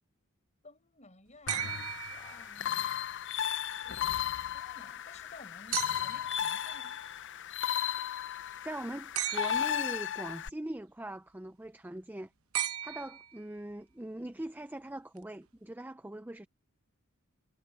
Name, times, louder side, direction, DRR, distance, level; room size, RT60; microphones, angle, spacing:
voice 1, 0.6-2.8 3.3-7.0, left 2 dB, 35° left, 6.6 m, -56 dB
sound 1, 1.5-10.5, left 10 dB, 55° left, 0.7 m, -35 dB
sound 2, 1.5-2.9 5.7-6.3 9.1-9.9 12.5-13.6 15.2-15.3, right 11 dB, 80° right, 1.0 m, -36 dB
voice 2, 8.6-12.3 12.8-16.5, right 1 dB, 10° right, 0.5 m, -41 dB
head